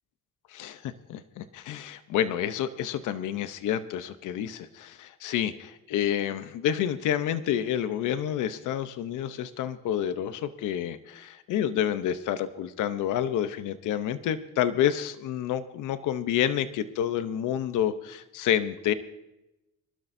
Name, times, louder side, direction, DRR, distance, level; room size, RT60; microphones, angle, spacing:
voice 1, 0.5-18.9, left 10 dB, 85° left, 11 dB, 0.8 m, -29 dB
25.0 x 12.5 x 2.7 m, 0.93 s
cardioid pair, 90°, 30 cm